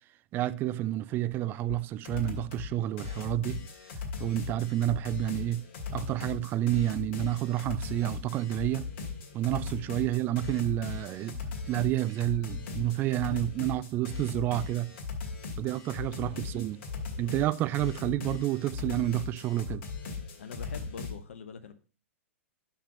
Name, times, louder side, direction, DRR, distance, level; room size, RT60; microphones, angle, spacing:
voice 1, 0.3-3.6 4.2-5.7 5.9-8.9 9.3-15.0 15.6-16.8 17.2-19.9, right 14 dB, 30° right, 0.4 m, -30 dB
sound 1, 1.7-1.8 2.1-2.7 3.0-21.1, left 4 dB, 50° left, 2.3 m, -38 dB
voice 2, 20.4-21.7, left 6 dB, 65° left, 0.8 m, -43 dB
6.0 x 5.8 x 5.3 m
figure-of-eight pair, 105°, 7 cm